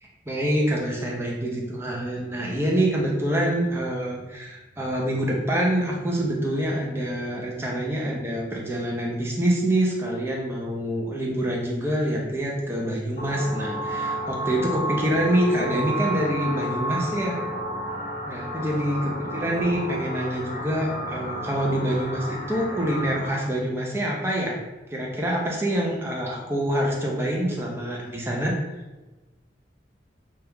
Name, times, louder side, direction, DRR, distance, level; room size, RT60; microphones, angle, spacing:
voice 1, 0.0-17.4 18.3-24.6 24.9-28.5, right 1 dB, 15° right, -2 dB, 0.4 m, -26 dB
sound 1, 13.2-23.3, equal, 50° left, 0.6 m, -31 dB
2.8 x 2.2 x 3.4 m, 1.1 s
head